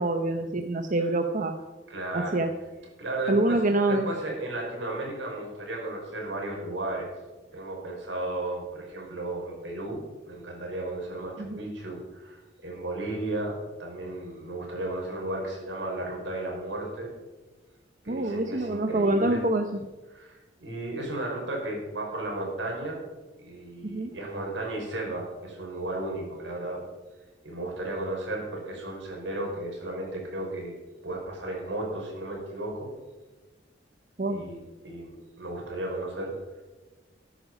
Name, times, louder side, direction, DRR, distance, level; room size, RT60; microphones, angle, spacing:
voice 1, 0.0-1.5 2.1-2.5 3.3-4.1 11.4-11.6 18.1-19.7 23.8-24.1 34.2-34.4, right 2 dB, 45° right, 6 dB, 0.8 m, -26 dB
voice 2, 1.9-2.4 3.0-3.6 3.8-7.1 7.5-17.1 18.0-19.4 20.1-23.0 23.4-26.8 27.4-30.8 31.0-32.9 34.3-36.3, right 2 dB, 80° right, -1 dB, 5.0 m, -34 dB
14.0 x 10.0 x 5.4 m, 1.2 s
head